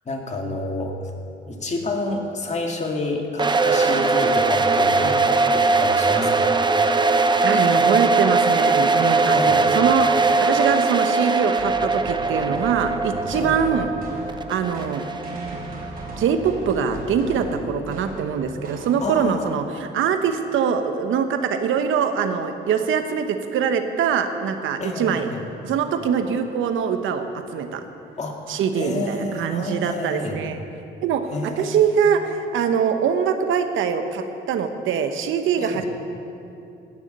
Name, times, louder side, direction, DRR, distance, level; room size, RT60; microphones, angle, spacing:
voice 1, 0.1-1.1 1.4-5.2 5.5-6.4 9.3-9.6 13.3-13.6 19.0-19.5 24.8-25.5 28.2-30.4 31.3-32.0 35.6-35.8, left 2 dB, 35° left, 1 dB, 2.1 m, -29 dB
sound 1, 3.4-16.2, right 3 dB, 20° right, 0.7 m, -20 dB
voice 2, 7.4-13.9 14.5-15.0 16.2-25.3 25.6-27.8 28.5-30.6 31.0-35.9, right 7 dB, 80° right, 8 dB, 1.1 m, -23 dB
sound 2, 11.6-19.4, right 1 dB, 50° right, 4.0 m, -37 dB
17.5 x 7.2 x 6.7 m, 2.7 s
cardioid pair, 85°, 20 cm